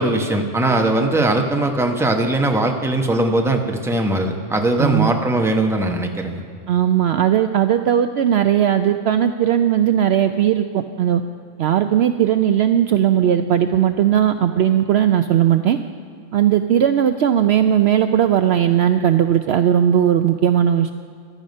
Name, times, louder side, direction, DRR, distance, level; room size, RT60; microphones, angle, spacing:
voice 1, 0.0-6.4, right 1 dB, ahead, 3 dB, 0.9 m, -20 dB
voice 2, 4.8-5.1 6.7-11.2 11.6-15.8 16.3-20.9, right 10 dB, 65° right, 9 dB, 0.7 m, -17 dB
15.0 x 11.5 x 5.3 m, 2.3 s
omnidirectional pair, 1.3 m